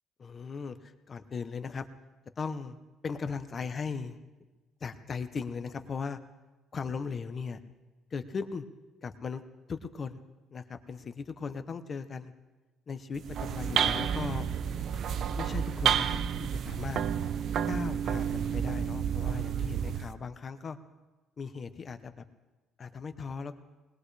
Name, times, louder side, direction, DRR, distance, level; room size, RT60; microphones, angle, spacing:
voice 1, 0.2-1.9 2.4-2.8 3.0-4.2 4.8-6.2 6.7-7.6 8.1-8.7 9.0-9.4 9.7-10.2 10.5-12.3 12.9-14.5 15.4-17.0 17.6-20.8 21.4-22.2 22.8-23.6, left 5 dB, 30° left, 10 dB, 0.8 m, -38 dB
sound 1, 13.1-20.1, right 8 dB, 50° right, 0.5 m, -30 dB
20.5 x 20.5 x 3.3 m, 1.2 s
cardioid pair, 165°, 0 cm